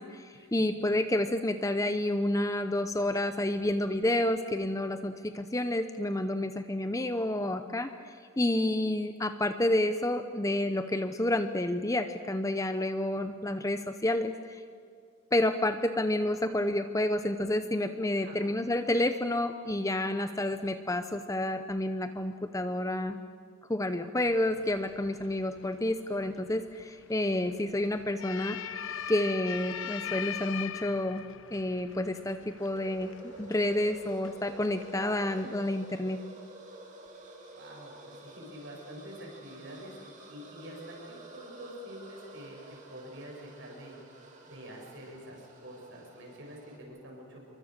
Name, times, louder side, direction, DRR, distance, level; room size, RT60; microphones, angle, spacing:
voice 1, 0.0-14.6 15.3-23.2 23.7-28.6 29.1-31.3 31.5-33.1 33.4-36.2, left 1 dB, 15° left, 9 dB, 0.7 m, -29 dB
sound 1, 24.2-35.4, left 9 dB, 65° left, 0.8 m, -42 dB
sound 2, 32.6-46.8, right 2 dB, 35° right, 3.1 m, -50 dB
voice 2, 37.5-40.0 40.3-42.6 42.9-44.0 44.4-47.6, equal, 55° right, -1 dB, 7.4 m, -47 dB
27.5 x 23.5 x 6.7 m, 2.2 s
head